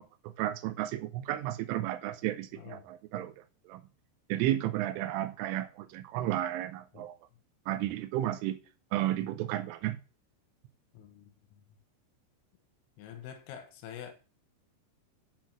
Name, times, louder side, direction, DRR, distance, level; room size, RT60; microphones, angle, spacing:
voice 1, 0.2-3.3 3.7-3.8 4.3-7.2 7.7-8.6 8.9-10.0, right 13 dB, 80° right, 3.2 m, -32 dB
voice 2, 2.5-2.9 6.9-7.1 9.2-9.3 10.9-11.8 13.0-14.1, left 9 dB, 80° left, 3.9 m, -47 dB
8.4 x 6.2 x 7.5 m
omnidirectional pair, 5.9 m